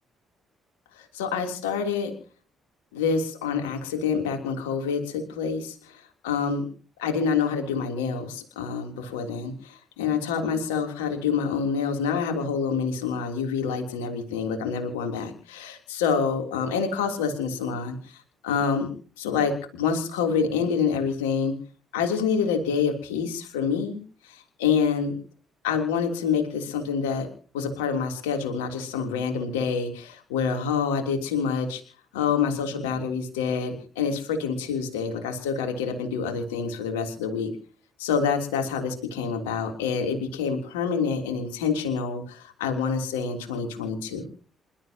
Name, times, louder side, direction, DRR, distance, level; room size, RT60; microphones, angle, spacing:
voice 1, 0.9-2.1 2.9-6.7 7.0-18.9 19.2-21.5 21.9-25.1 25.6-27.3 27.5-31.8 32.1-37.5 38.0-44.3, left 6 dB, 80° left, 5 dB, 3.3 m, -27 dB
27.5 x 13.5 x 2.9 m, 0.39 s
hypercardioid pair, 45°, 0 cm